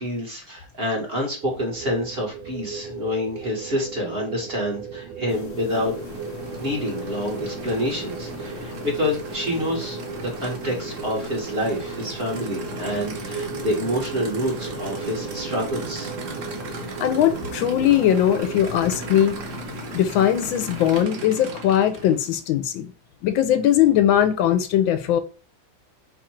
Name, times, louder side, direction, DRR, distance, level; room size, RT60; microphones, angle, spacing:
voice 1, 0.0-5.9 6.6-16.1, equal, 35° right, 1.4 m, -27 dB
sound 1, 1.4-19.3, right 6 dB, 85° right, 1.4 m, -37 dB
sound 2, 5.3-21.0, left 5 dB, 55° left, 1.0 m, -39 dB
Aircraft / Idling, 5.5-22.5, right 4 dB, 55° right, 1.0 m, -38 dB
voice 2, 17.0-19.4 19.9-22.9 23.2-25.2, left 10 dB, 85° left, 1.4 m, -20 dB
4.5 x 2.5 x 4.3 m
omnidirectional pair, 2.1 m